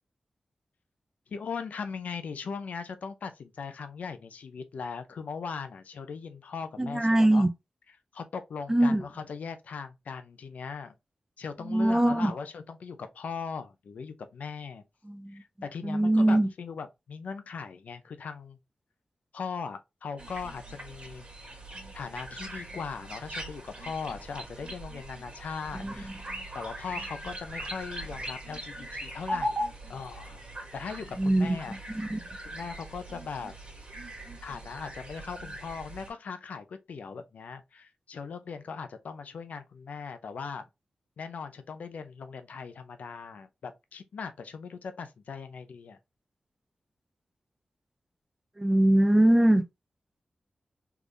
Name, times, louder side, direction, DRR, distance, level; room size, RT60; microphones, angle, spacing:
voice 1, 1.3-7.5 8.1-10.9 11.4-14.8 15.3-18.6 19.3-21.3 21.9-26.1 26.5-29.6 29.9-30.4 30.7-31.8 32.4-33.5 34.4-40.6 41.2-46.0, left 5 dB, 85° left, 0.5 m, -39 dB
voice 2, 6.8-7.5 8.7-9.0 11.6-12.3 15.0-15.4 15.8-16.5 25.7-26.1 31.2-31.6 31.9-32.2 48.6-49.6, right 1 dB, 20° right, 0.6 m, -23 dB
sound 1, 20.2-36.1, right 1 dB, 50° right, 1.6 m, -40 dB
3.4 x 3.4 x 2.5 m
cardioid pair, 40°, 3 cm